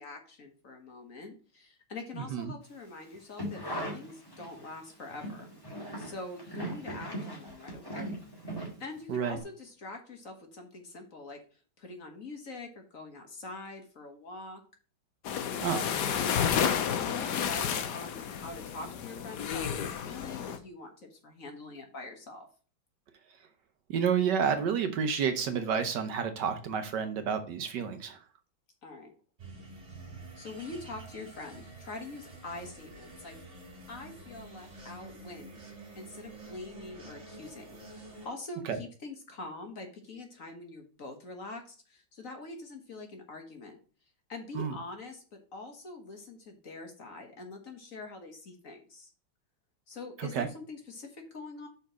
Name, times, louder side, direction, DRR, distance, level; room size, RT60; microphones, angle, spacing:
voice 1, 0.0-5.5 6.0-8.1 8.8-11.4 11.8-14.6 15.9-22.5 28.8-29.1 30.3-33.4 33.9-35.6 35.9-43.8 44.3-45.2 45.5-49.1 49.9-51.7, left 3 dB, 45° left, 4 dB, 1.5 m, -44 dB
sound 1, 3.1-4.7 5.1-9.1 9.4-9.5, right 1 dB, 10° left, 2.1 m, -39 dB
sound 2, 15.2-20.6, left 8 dB, 65° left, 1.3 m, -31 dB
voice 2, 15.6-15.9 23.9-28.2 38.6-38.8 44.5-44.8 50.2-50.5, right 7 dB, 65° right, 8 dB, 1.3 m, -30 dB
sound 3, 29.4-38.3, right 2 dB, 35° right, 2.8 m, -48 dB
5.6 x 4.5 x 6.1 m, 0.39 s
omnidirectional pair, 2.1 m